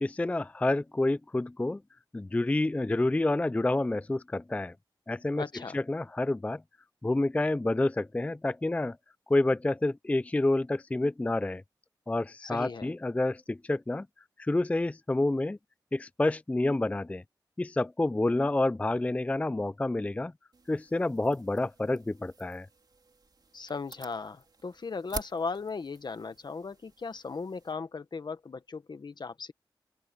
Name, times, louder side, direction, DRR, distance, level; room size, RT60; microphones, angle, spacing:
voice 1, 0.0-1.8 2.1-4.7 5.1-5.4 5.7-6.6 7.0-9.0 9.3-11.6 12.1-14.1 14.4-15.6 15.9-17.2 17.6-20.3 20.7-22.7, left 2 dB, 15° left, 0.3 m, -28 dB
voice 2, 5.4-5.8 12.4-12.9 23.5-29.5, left 4 dB, 60° left, 1.2 m, -37 dB
sound 1, 20.5-27.7, right 3 dB, 55° right, 3.6 m, -48 dB
open air
wide cardioid pair, 85°, 8 cm